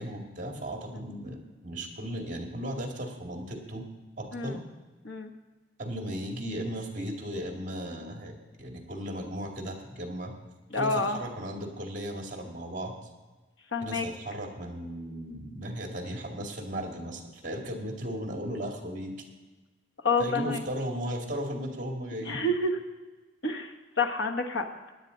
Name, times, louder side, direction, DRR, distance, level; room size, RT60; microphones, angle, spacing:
voice 1, 0.0-3.8 4.2-4.6 5.8-8.3 8.6-10.3 10.7-12.9 13.8-19.1 20.2-22.4, equal, 40° right, 2 dB, 2.1 m, -36 dB
voice 2, 10.7-11.2 13.7-14.1 20.0-20.6 22.2-22.8 23.4-24.9, left 2 dB, 85° left, 3 dB, 1.3 m, -28 dB
16.5 x 10.5 x 3.9 m, 1.2 s
head